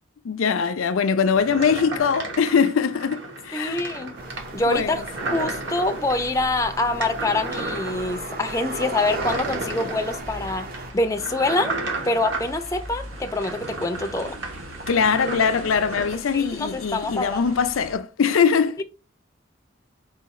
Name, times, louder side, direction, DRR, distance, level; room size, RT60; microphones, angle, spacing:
voice 1, 0.2-3.8 4.7-5.0 14.9-18.8, left 6 dB, 85° left, 0.4 m, -22 dB
sound 1, 1.3-16.2, right 2 dB, 65° right, 1.1 m, -34 dB
voice 2, 3.5-4.2 4.5-5.0 5.3-10.7 10.9-11.8 12.1-14.3 16.3-17.4, left 2 dB, 15° left, 0.4 m, -25 dB
sound 2, 4.2-10.9, right 2 dB, 45° right, 0.6 m, -35 dB
sound 3, 10.2-18.0, equal, 90° right, 1.2 m, -42 dB
4.6 x 2.3 x 4.1 m
head